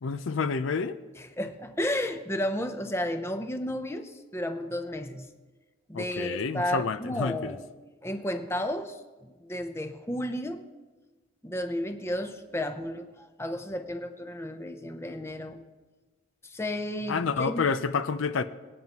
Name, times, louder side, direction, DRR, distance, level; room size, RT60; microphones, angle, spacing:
voice 1, 0.0-1.0 5.9-7.5 17.1-18.4, left 5 dB, 65° left, 12 dB, 0.5 m, -29 dB
voice 2, 1.2-5.3 5.9-7.7 8.0-9.0 9.2-10.7 11.4-15.6 16.4-17.6, left 1 dB, 10° left, 7 dB, 0.6 m, -33 dB
23.5 x 9.1 x 3.0 m, 1.2 s
head